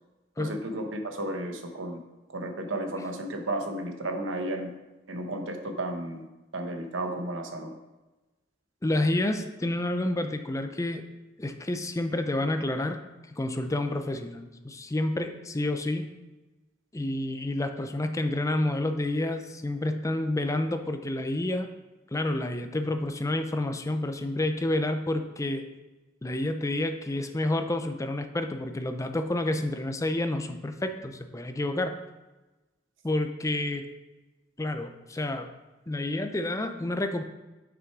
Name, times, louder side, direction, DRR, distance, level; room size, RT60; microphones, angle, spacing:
voice 1, 0.4-2.0 2.3-4.7 5.1-6.3 6.5-7.7, right 1 dB, 85° right, 5 dB, 1.0 m, -33 dB
voice 2, 8.8-11.0 11.4-13.0 13.3-16.1 16.9-21.7 22.1-25.6 26.2-32.0 33.0-33.9 34.6-35.5 35.9-37.2, left 1 dB, 15° left, 7 dB, 0.5 m, -29 dB
6.1 x 6.0 x 4.6 m, 1.1 s
head